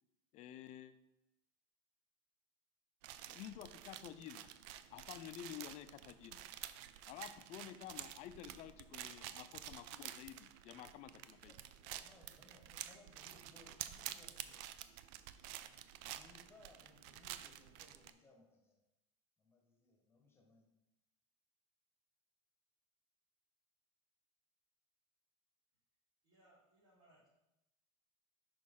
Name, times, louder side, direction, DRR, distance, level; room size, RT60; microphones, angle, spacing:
voice 1, 0.3-0.9 3.3-4.5 4.9-6.4 7.1-11.5, left 11 dB, 45° left, 11 dB, 0.5 m, -51 dB
sound 1, 3.0-18.1, right 12 dB, 65° right, 0.4 m, -50 dB
voice 2, 11.5-14.7 16.1-18.8 19.4-20.7, left 2 dB, 15° left, 2 dB, 1.3 m, -65 dB
voice 3, 26.2-27.3, right 1 dB, 85° right, -9 dB, 2.5 m, -69 dB
6.0 x 5.3 x 3.8 m, 0.91 s
supercardioid pair, 110°, 16 cm